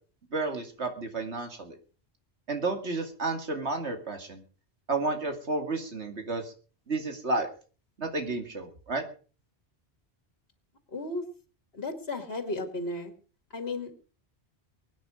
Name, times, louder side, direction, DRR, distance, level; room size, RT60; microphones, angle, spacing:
voice 1, 0.3-1.8 2.5-4.4 4.9-6.5 6.9-7.5 8.0-9.0, right 3 dB, 85° right, 5 dB, 2.7 m, -31 dB
voice 2, 10.9-11.2 11.7-13.1 13.5-13.9, left 2 dB, 65° left, 7 dB, 2.5 m, -34 dB
23.5 x 9.4 x 5.0 m, 0.39 s
omnidirectional pair, 1.1 m